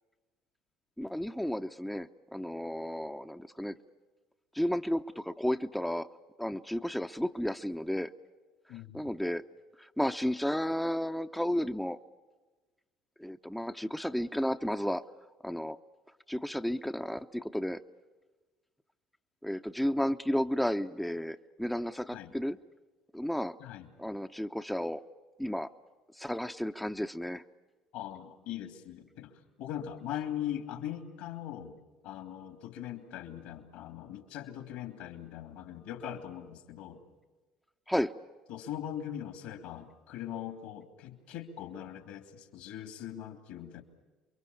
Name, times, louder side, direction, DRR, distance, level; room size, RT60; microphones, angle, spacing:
voice 1, 1.0-3.8 4.5-6.1 6.4-8.1 8.7-9.5 9.8-12.0 13.2-15.1 15.4-15.8 16.3-17.8 19.4-22.6 23.1-23.6 24.0-25.0 25.4-25.7 26.1-27.4 37.9-38.1, equal, 5° left, 7 dB, 0.8 m, -33 dB
voice 2, 8.7-9.1 22.1-22.3 23.6-23.9 27.9-31.8 32.0-37.0 38.5-43.8, left 10 dB, 75° left, 8 dB, 2.8 m, -41 dB
29.0 x 23.5 x 7.2 m, 1.3 s
hypercardioid pair, 60°, 2 cm